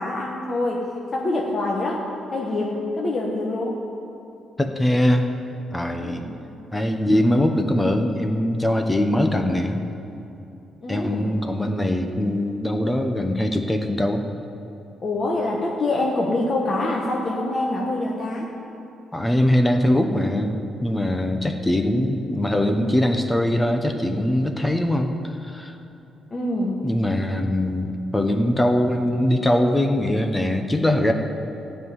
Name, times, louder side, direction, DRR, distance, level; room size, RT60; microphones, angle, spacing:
voice 1, 0.0-2.0 2.3-3.8 5.8-6.3 10.8-11.3 15.0-18.5 26.3-26.8, left 2 dB, 30° left, -3 dB, 1.2 m, -25 dB
voice 2, 4.6-5.3 5.7-6.2 6.7-9.8 10.9-14.2 19.1-25.8 26.8-31.1, left 1 dB, 10° left, 5 dB, 0.7 m, -22 dB
14.5 x 5.6 x 9.6 m, 2.8 s
cardioid pair, 150°, 0 cm